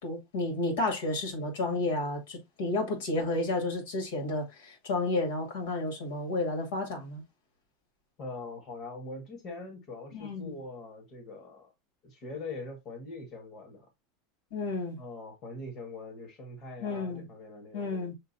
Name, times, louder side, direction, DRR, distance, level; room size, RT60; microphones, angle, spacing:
voice 1, 0.0-7.2 10.1-10.6 14.5-15.0 16.8-17.2 17.7-18.1, left 2 dB, 85° left, 2.2 m, -31 dB
voice 2, 8.2-11.7 12.0-13.9 15.0-17.9, left 2 dB, 35° left, 1.5 m, -42 dB
6.6 x 2.5 x 2.7 m
supercardioid pair, 165°, 0 cm